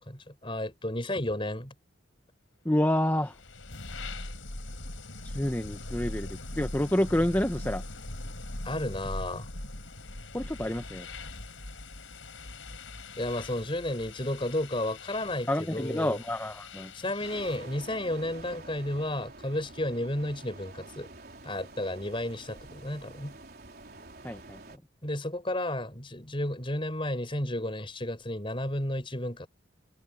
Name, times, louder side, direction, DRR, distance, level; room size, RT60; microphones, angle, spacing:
voice 1, 0.0-1.7 8.6-9.5 13.2-16.2 16.9-21.1 21.4-23.4 25.0-29.5, left 1 dB, 25° left, 4.5 m, -32 dB
voice 2, 2.6-3.4 5.2-7.8 10.3-11.1 15.5-16.9 24.2-24.8, left 1 dB, 10° left, 0.8 m, -28 dB
sound 1, 3.1-17.7, left 2 dB, 90° left, 4.8 m, -41 dB
sound 2, 17.2-24.8, right 2 dB, 50° right, 4.3 m, -48 dB
head